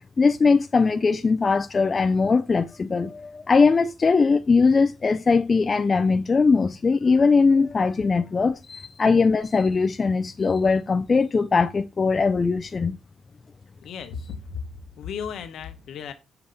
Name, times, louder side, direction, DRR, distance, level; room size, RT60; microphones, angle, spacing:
voice 1, 0.2-13.0, left 4 dB, 35° left, 0.4 m, -20 dB
voice 2, 13.8-14.7 15.0-16.1, left 6 dB, 70° left, 1.0 m, -35 dB
6.9 x 2.8 x 5.1 m
cardioid pair, 90°, 0 cm